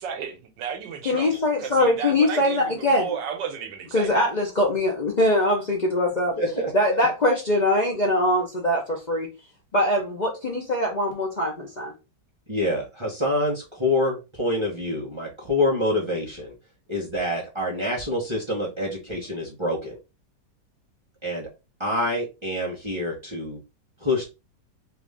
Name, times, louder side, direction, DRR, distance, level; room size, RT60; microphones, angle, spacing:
voice 1, 0.0-4.1, right 7 dB, 90° right, 1.4 m, -33 dB
voice 2, 1.0-3.1 3.9-6.4 6.7-9.3 9.7-11.9, left 1 dB, 60° left, 0.4 m, -22 dB
voice 3, 6.4-7.1 12.5-16.5 16.9-20.0 21.2-21.5 21.8-23.6 24.0-24.3, left 1 dB, 25° right, 0.7 m, -26 dB
3.3 x 2.5 x 3.3 m
omnidirectional pair, 1.9 m